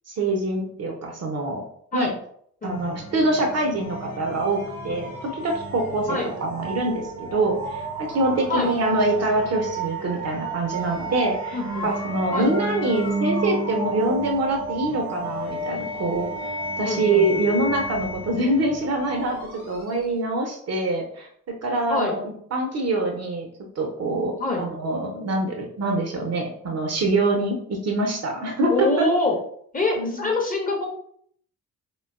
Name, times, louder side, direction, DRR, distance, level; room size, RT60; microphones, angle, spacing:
voice 1, 0.1-1.6 1.9-2.1 2.6-16.3 16.8-23.5 23.8-29.1 30.0-30.3, right 2 dB, 35° right, 2 dB, 0.6 m, -25 dB
voice 2, 2.6-3.0 6.1-6.3 8.5-8.7 11.5-11.9 12.3-12.5 16.8-17.4 21.9-22.2 24.4-24.6 28.7-29.4 29.7-30.9, left 2 dB, 20° left, 0 dB, 0.8 m, -25 dB
sound 1, 2.7-20.2, right 2 dB, 80° left, 0.8 m, -32 dB
3.8 x 2.2 x 2.3 m, 0.64 s
figure-of-eight pair, 40°, 45 cm